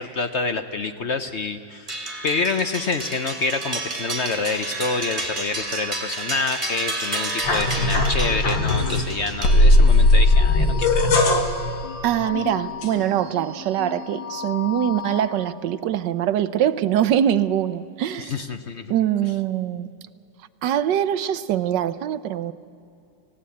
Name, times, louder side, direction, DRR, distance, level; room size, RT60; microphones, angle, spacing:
voice 1, 0.0-2.0 2.2-11.1 18.2-18.9, left 4 dB, 55° left, 0.7 m, -27 dB
sound 1, 1.9-10.0, right 2 dB, 20° right, 2.7 m, -31 dB
sound 2, 7.4-9.1 9.4-13.4 13.8-15.3, left 2 dB, 75° left, 2.4 m, -19 dB
voice 2, 12.0-18.3 18.9-19.9 20.6-22.5, right 10 dB, 70° right, 1.3 m, -23 dB
28.0 x 17.0 x 8.5 m
omnidirectional pair, 2.1 m